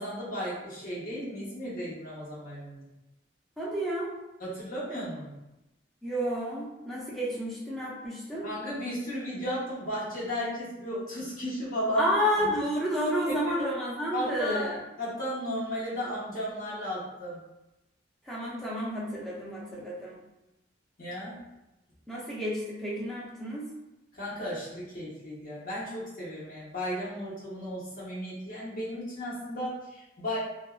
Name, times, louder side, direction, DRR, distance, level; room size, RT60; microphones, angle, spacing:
voice 1, 0.0-2.9 4.4-5.3 8.4-12.5 13.3-13.4 14.1-14.7 15.0-17.4 21.0-21.4 24.1-30.4, equal, 45° left, -8 dB, 1.0 m, -34 dB
voice 2, 3.6-4.1 6.0-8.4 12.0-14.8 18.3-20.2 22.1-23.7, equal, ahead, -7 dB, 0.5 m, -30 dB
2.6 x 2.2 x 2.3 m, 0.96 s
head